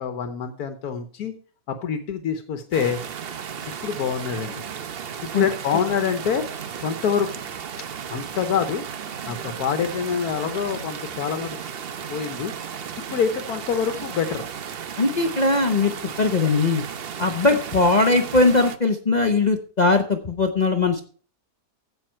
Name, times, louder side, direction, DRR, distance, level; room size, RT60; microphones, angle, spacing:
voice 1, 0.0-1.3 1.7-3.0 3.8-4.7 5.3-6.5 6.8-7.4 8.1-8.8 9.3-11.6 12.1-12.5 13.1-14.4, left 7 dB, 85° left, 8 dB, 1.5 m, -26 dB
sound 1, 2.7-18.8, right 7 dB, 50° right, 0.8 m, -34 dB
voice 2, 15.0-16.8 17.2-21.0, left 3 dB, 35° left, 5 dB, 0.8 m, -20 dB
15.0 x 5.9 x 4.5 m, 0.42 s
omnidirectional pair, 1.6 m